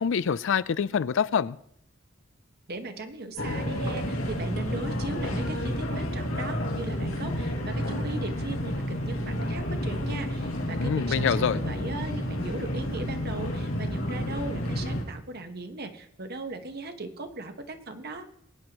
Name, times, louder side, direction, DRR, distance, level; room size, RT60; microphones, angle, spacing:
voice 1, 0.0-1.6 10.8-11.6, left 7 dB, 65° left, 17 dB, 0.4 m, -25 dB
voice 2, 2.7-18.3, right 2 dB, 50° right, 7 dB, 1.2 m, -38 dB
sound 1, 3.4-15.0, equal, 85° left, 2.4 m, -30 dB
22.0 x 9.5 x 3.0 m, 0.70 s
head